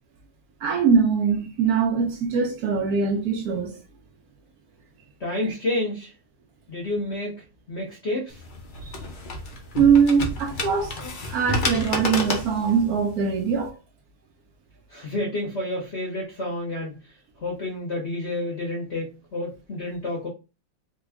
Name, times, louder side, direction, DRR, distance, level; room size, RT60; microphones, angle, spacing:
voice 1, 0.6-3.8 8.8-9.0 9.8-11.0 11.3-13.8, right 6 dB, 70° right, 0.9 m, -22 dB
voice 2, 5.2-6.1 6.7-7.4 7.7-8.4 14.9-17.0 17.4-20.3, left 1 dB, 45° left, 0.9 m, -29 dB
sound 1, 8.3-13.7, left 2 dB, 75° left, 0.4 m, -30 dB
3.4 x 2.2 x 3.4 m
omnidirectional pair, 2.0 m